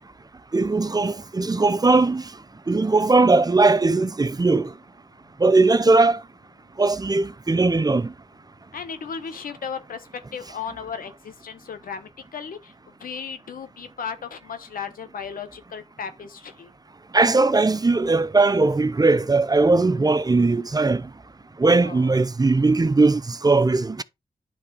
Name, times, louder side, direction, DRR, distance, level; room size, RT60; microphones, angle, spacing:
voice 1, 0.5-2.3 2.7-4.7 5.4-6.2 6.8-8.1 17.1-21.0 21.6-24.0, right 3 dB, 25° right, 0.5 m, -19 dB
voice 2, 8.7-12.7 13.0-16.7 21.8-22.2, left 6 dB, 90° left, 1.0 m, -35 dB
10.0 x 3.4 x 4.7 m
cardioid pair, 50°, 14 cm